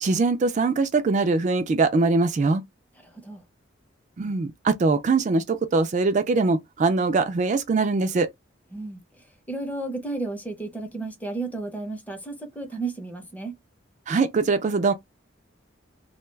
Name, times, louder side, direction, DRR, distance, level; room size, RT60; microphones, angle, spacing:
voice 1, 0.0-2.6 4.2-8.3 14.1-14.9, right 3 dB, 40° right, 0.3 m, -22 dB
voice 2, 3.0-3.4 8.7-13.6, right 3 dB, 10° left, 0.6 m, -33 dB
2.3 x 2.2 x 3.1 m
head